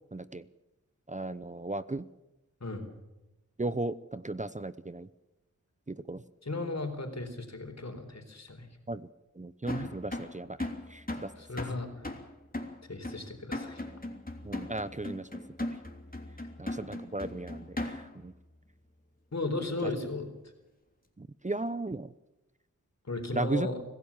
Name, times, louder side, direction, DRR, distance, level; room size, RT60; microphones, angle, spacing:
voice 1, 0.1-0.5 1.1-2.1 3.6-5.1 5.9-6.2 8.9-9.1 9.4-11.3 14.4-15.4 16.6-18.3 19.8-19.9 21.2-22.1 23.3-23.7, right 2 dB, 25° right, 14 dB, 0.7 m, -36 dB
voice 2, 6.4-8.7 11.4-11.9 12.9-13.8 19.3-20.3 23.1-23.8, left 2 dB, 60° left, 5 dB, 4.1 m, -35 dB
sound 1, 9.7-18.3, left 1 dB, 30° left, 3.2 m, -38 dB
25.5 x 16.0 x 7.3 m, 1.0 s
wide cardioid pair, 55°, 31 cm